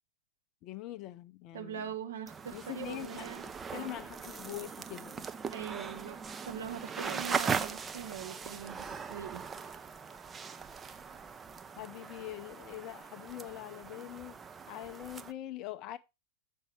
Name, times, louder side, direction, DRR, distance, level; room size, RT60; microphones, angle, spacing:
voice 1, 0.6-1.8 2.5-3.3 3.7-5.2 11.8-14.4 14.7-16.0, left 14 dB, 40° left, 0.5 m, -43 dB
voice 2, 1.5-3.4 3.7-3.9 5.5-6.2 6.4-9.4, right 8 dB, 60° right, 1.2 m, -42 dB
sound 1, 2.3-15.3, right 5 dB, 20° right, 0.6 m, -40 dB
7.1 x 5.5 x 4.6 m
figure-of-eight pair, 90°, 0 cm